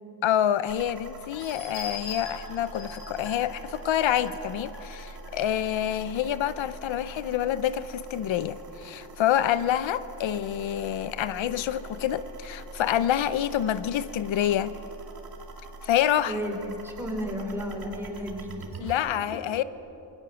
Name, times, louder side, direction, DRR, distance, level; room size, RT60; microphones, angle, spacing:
voice 1, 0.2-14.7 15.8-16.4 18.8-19.6, left 11 dB, 90° left, 14 dB, 0.8 m, -27 dB
sound 1, 0.7-19.0, right 2 dB, 55° right, 2.6 m, -44 dB
sound 2, 1.3-5.8 6.3-6.4 6.8-6.9, left 4 dB, 70° left, 6.5 m, -42 dB
voice 2, 16.2-16.6 16.8-18.9, equal, 5° right, 0 dB, 4.8 m, -33 dB
27.5 x 22.5 x 7.0 m, 3.0 s
wide cardioid pair, 135°, 44 cm